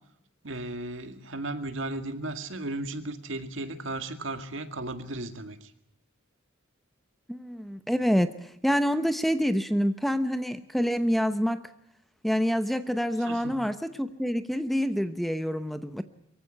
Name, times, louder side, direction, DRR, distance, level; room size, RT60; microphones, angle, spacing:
voice 1, 0.4-5.7 13.2-13.6, right 2 dB, 65° right, 8 dB, 2.0 m, -35 dB
voice 2, 7.3-11.7 12.2-16.0, equal, ahead, 11 dB, 0.9 m, -27 dB
23.5 x 15.5 x 9.9 m, 0.78 s
head